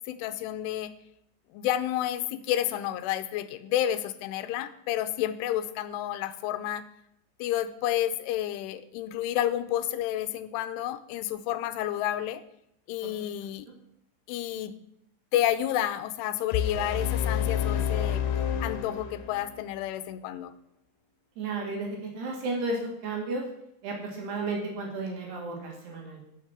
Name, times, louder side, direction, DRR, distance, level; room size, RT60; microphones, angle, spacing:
voice 1, 0.1-0.9 1.5-6.9 7.4-12.4 12.9-13.7 14.3-14.8 15.3-18.2 18.6-20.5, left 12 dB, 85° left, 12 dB, 3.2 m, -30 dB
sound 1, 16.5-19.6, left 8 dB, 65° left, 2.9 m, -29 dB
voice 2, 21.4-23.4 23.8-26.2, right 3 dB, 60° right, 0 dB, 4.2 m, -33 dB
16.0 x 7.5 x 7.2 m, 0.77 s
omnidirectional pair, 5.6 m